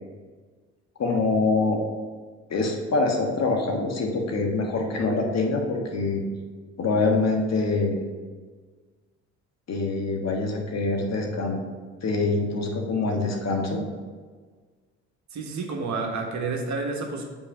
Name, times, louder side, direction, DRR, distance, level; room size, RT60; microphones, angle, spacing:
voice 1, 1.0-1.8 2.5-6.2 6.8-8.0 9.7-11.6 12.0-13.8, left 3 dB, 50° left, 1 dB, 1.5 m, -25 dB
voice 2, 15.3-17.2, right 3 dB, 55° right, 2 dB, 1.4 m, -30 dB
6.0 x 4.6 x 5.7 m, 1.5 s
supercardioid pair, 60°, 33 cm